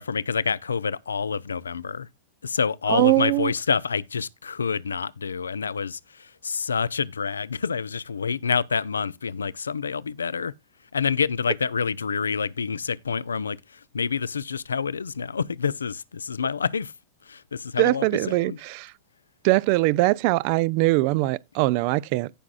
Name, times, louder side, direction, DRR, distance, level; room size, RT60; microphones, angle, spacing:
voice 1, 0.0-2.1 2.4-10.5 10.9-16.9 17.3-18.6, left 6 dB, 75° left, 0.4 m, -27 dB
voice 2, 2.9-3.5 17.8-18.9 19.4-22.3, right 20 dB, 45° right, 0.4 m, -22 dB
17.0 x 5.9 x 2.3 m
figure-of-eight pair, 90°, 0 cm